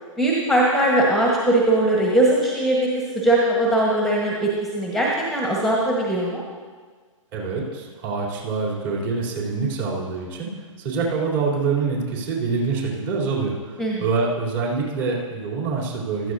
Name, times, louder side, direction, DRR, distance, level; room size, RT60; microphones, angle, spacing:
voice 1, 0.2-2.9 3.1-6.4 13.8-14.0, right 1 dB, ahead, -3 dB, 1.4 m, -20 dB
voice 2, 7.3-10.5 10.8-16.3, right 4 dB, 40° right, -3 dB, 3.6 m, -25 dB
15.0 x 13.0 x 2.8 m, 1.5 s
figure-of-eight pair, 120°, 17 cm